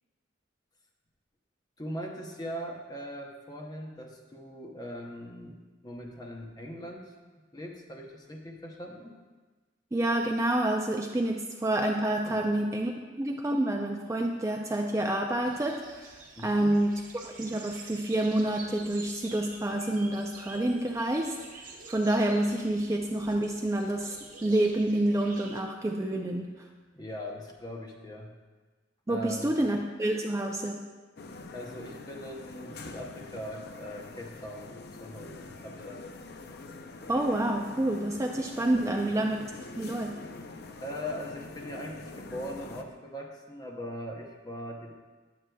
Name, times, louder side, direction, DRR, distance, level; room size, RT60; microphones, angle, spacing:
voice 1, 1.8-5.6 5.8-7.1 7.5-9.1 12.2-12.6 12.9-13.0 16.4-16.8 26.9-28.3 29.1-29.6 31.5-36.1 38.7-39.1 40.8-44.9, equal, 20° left, 1 dB, 0.7 m, -40 dB
voice 2, 9.9-12.9 13.2-16.1 16.4-16.9 17.2-24.2 24.4-26.5 29.1-30.8 37.1-39.4 39.8-40.1, right 1 dB, 15° right, 1 dB, 0.3 m, -28 dB
sound 1, 15.5-25.6, right 3 dB, 45° right, 1.0 m, -48 dB
sound 2, 31.2-42.8, left 3 dB, 55° left, 0.4 m, -44 dB
9.2 x 7.5 x 2.2 m, 1.3 s
head